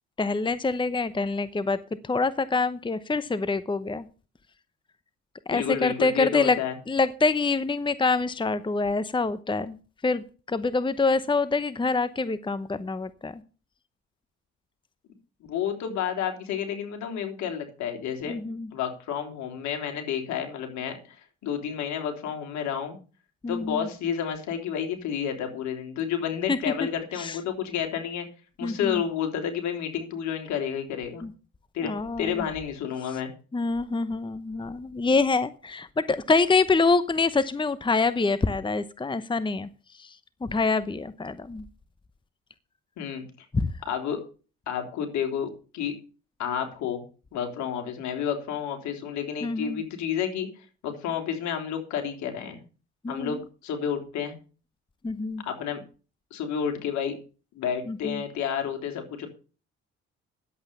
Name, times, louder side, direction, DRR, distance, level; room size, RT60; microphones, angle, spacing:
voice 1, 0.2-1.8 2.0-4.1 5.5-6.6 6.9-9.8 10.0-13.4 18.3-18.7 23.4-23.9 26.5-26.9 27.1-27.4 28.6-29.0 31.2-31.3 31.8-32.5 33.1-33.2 33.5-41.6 43.5-43.7 49.4-49.8 53.0-53.4 55.0-55.4 57.9-58.2, left 3 dB, 15° left, 14 dB, 0.9 m, -26 dB
voice 2, 5.5-6.7 15.5-18.3 18.7-21.2 21.4-23.0 23.5-28.3 28.6-31.2 31.7-31.9 32.2-33.3 43.0-43.2 43.9-44.2 44.7-46.0 46.4-47.0 47.3-52.6 53.1-54.4 55.4-55.8 56.3-57.2 57.6-59.3, left 8 dB, 70° left, 4 dB, 3.6 m, -30 dB
11.0 x 8.2 x 6.8 m, 0.36 s
supercardioid pair, 70°, 29 cm